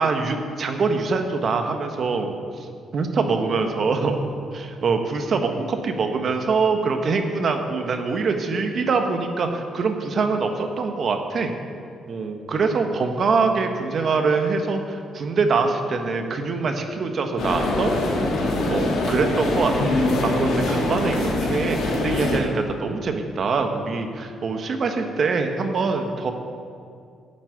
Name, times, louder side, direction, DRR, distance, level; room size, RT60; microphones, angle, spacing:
voice 1, 0.0-2.3 2.9-4.2 4.5-11.5 12.1-17.9 18.7-26.3, right 4 dB, 50° right, 5 dB, 1.3 m, -24 dB
sound 1, 17.4-22.4, left 2 dB, 75° left, 2.5 m, -23 dB
9.8 x 7.3 x 9.2 m, 2.3 s
cardioid pair, 90°, 0 cm